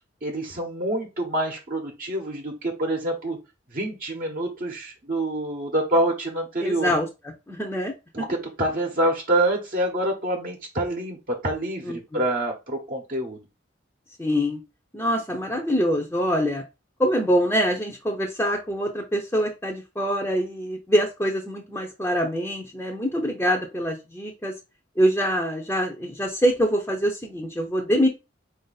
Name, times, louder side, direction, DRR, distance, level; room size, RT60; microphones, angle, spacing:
voice 1, 0.2-3.4 3.7-6.9 8.1-13.4, right 1 dB, 50° right, 0 dB, 0.9 m, -26 dB
voice 2, 6.6-7.1 7.5-7.9 11.8-12.2 14.2-14.6 14.9-16.6 17.0-24.5 25.0-28.1, equal, 10° left, 0 dB, 0.6 m, -24 dB
4.5 x 2.6 x 3.9 m, 0.26 s
head